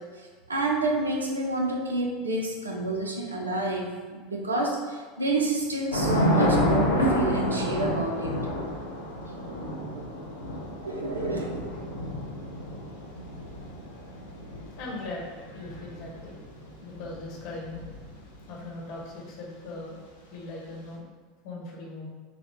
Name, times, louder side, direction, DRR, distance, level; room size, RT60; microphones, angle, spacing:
voice 1, 0.0-8.4 9.9-10.1 10.8-11.5, right 2 dB, 80° right, 0 dB, 0.6 m, -29 dB
Thunder / Rain, 5.9-18.4, equal, 75° left, 0.7 m, -29 dB
voice 2, 14.8-16.4 16.8-17.8 18.4-20.0 20.3-21.0 21.4-22.1, left 2 dB, 50° left, -3 dB, 1.2 m, -39 dB
5.8 x 2.3 x 3.5 m, 1.5 s
figure-of-eight pair, 80°, 0 cm